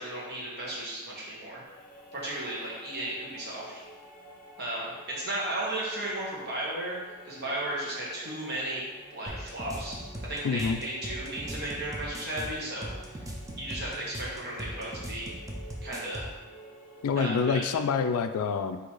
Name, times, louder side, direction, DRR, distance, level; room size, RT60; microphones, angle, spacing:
voice 1, 0.0-1.6 2.1-3.7 4.6-7.0 7.2-8.8 9.1-9.9 10.2-13.2 13.6-15.3 15.8-16.3 17.1-17.6, right 1 dB, 50° right, -5 dB, 1.3 m, -35 dB
sound 1, 1.6-17.8, equal, 40° left, 0.8 m, -50 dB
sound 2, 9.3-16.4, equal, 15° right, 0.5 m, -39 dB
voice 2, 10.4-10.8 17.0-18.8, left 5 dB, 80° left, 9 dB, 0.3 m, -27 dB
3.9 x 2.8 x 4.7 m, 1.2 s
head